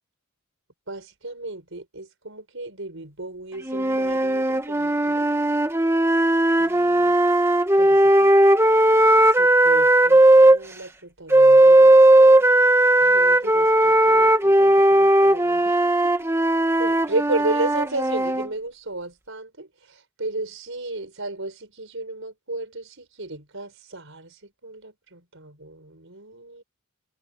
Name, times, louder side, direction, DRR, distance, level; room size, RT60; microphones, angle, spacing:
voice 1, 0.9-5.3 6.6-7.2 7.8-8.3 9.3-12.4 13.0-16.2 16.8-26.6, right 2 dB, 60° right, 6.5 m, -34 dB
sound 1, 3.6-10.6 11.3-18.5, right 1 dB, 10° right, 1.6 m, -17 dB
head